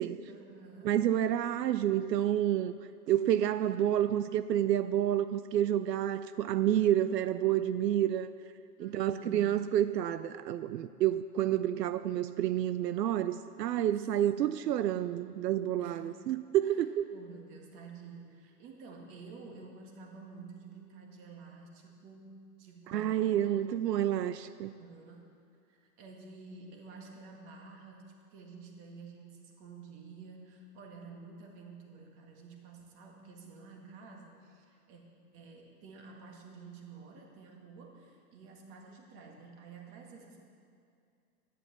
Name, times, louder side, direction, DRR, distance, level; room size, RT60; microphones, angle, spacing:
voice 1, 0.3-1.0 8.8-9.6 14.1-14.5 15.8-16.1 16.6-16.8 17.1-23.6 24.8-25.3 25.7-35.0 35.3-40.4, right 4 dB, 25° right, 1 dB, 1.8 m, -50 dB
voice 2, 0.8-2.7 3.1-8.3 8.8-17.1 22.9-24.7, right 11 dB, 80° right, 12 dB, 0.6 m, -29 dB
12.0 x 10.5 x 7.1 m, 2.4 s
hypercardioid pair, 155°, 48 cm